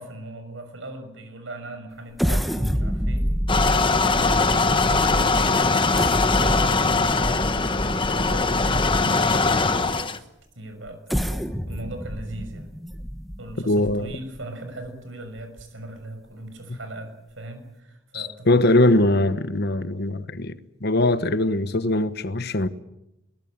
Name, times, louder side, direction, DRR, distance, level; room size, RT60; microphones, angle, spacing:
voice 1, 0.0-3.3 4.1-7.8 8.1-10.3 10.5-12.7 13.4-18.6, right 1 dB, 75° right, 6.4 m, -39 dB
sound 1, 2.2-9.3 9.9-10.0 10.9-14.4 14.9-15.0 15.4-15.6, equal, ahead, 1.5 m, -28 dB
sound 2, 3.5-10.2, left 3 dB, 25° left, 1.1 m, -21 dB
voice 2, 13.7-14.1 16.7-16.8 18.1-22.7, left 1 dB, 55° left, 1.2 m, -21 dB
22.5 x 19.5 x 8.9 m
head